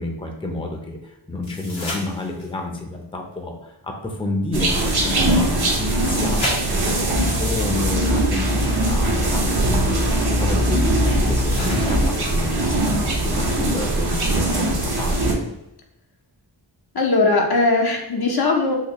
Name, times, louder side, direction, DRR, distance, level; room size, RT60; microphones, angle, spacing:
voice 1, 0.0-15.4, left 2 dB, 10° left, 2 dB, 0.6 m, -30 dB
sound 1, 1.4-2.7 6.2-7.2 9.1-9.2 11.5-12.5 15.4-15.5, left 1 dB, 85° left, 1.3 m, -32 dB
sound 2, 4.5-15.3, right 1 dB, 55° right, 0.9 m, -21 dB
voice 2, 16.9-18.8, left 3 dB, 55° left, 1 dB, 0.7 m, -19 dB
3.9 x 2.4 x 3.0 m, 0.90 s
wide cardioid pair, 55°, 45 cm